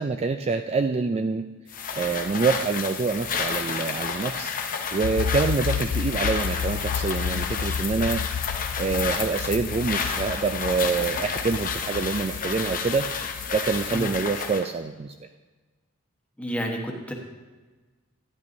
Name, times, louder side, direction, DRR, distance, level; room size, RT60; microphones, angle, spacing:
voice 1, 0.0-1.4 1.9-4.5 4.9-8.2 8.8-13.1 13.5-15.3, right 4 dB, 30° right, 7 dB, 0.3 m, -26 dB
sound 1, 1.7-14.7, left 6 dB, 40° left, 0.7 m, -31 dB
sound 2, 5.0-14.2, left 7 dB, 85° left, 0.3 m, -32 dB
voice 2, 16.4-17.1, equal, 5° left, 0 dB, 1.1 m, -30 dB
12.0 x 10.0 x 2.6 m, 1.3 s
head